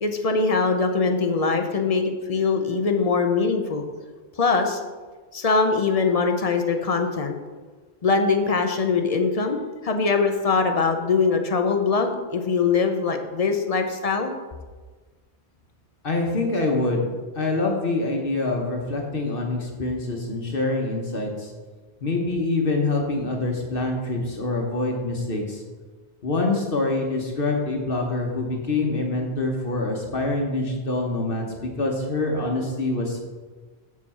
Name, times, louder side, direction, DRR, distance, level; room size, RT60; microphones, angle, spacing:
voice 1, 0.0-3.8 4.4-4.8 5.3-7.3 8.0-14.3, left 4 dB, 40° left, 5 dB, 0.7 m, -22 dB
voice 2, 16.0-21.5 22.0-25.6 26.2-33.2, left 2 dB, 55° left, 1 dB, 1.2 m, -25 dB
7.2 x 6.8 x 4.2 m, 1.4 s
omnidirectional pair, 1.1 m